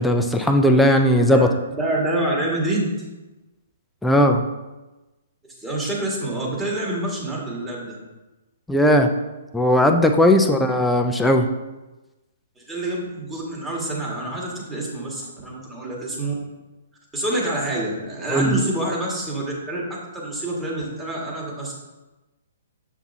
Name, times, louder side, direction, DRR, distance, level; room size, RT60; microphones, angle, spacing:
voice 1, 0.0-1.5 4.0-4.4 8.7-9.1 9.5-11.5 18.3-18.6, equal, 5° left, 4 dB, 0.5 m, -17 dB
voice 2, 1.8-2.9 5.6-8.0 10.4-10.5 12.6-16.3 17.1-21.7, right 1 dB, 15° right, -4 dB, 1.9 m, -27 dB
7.2 x 5.9 x 2.8 m, 1.1 s
figure-of-eight pair, 125°, 0 cm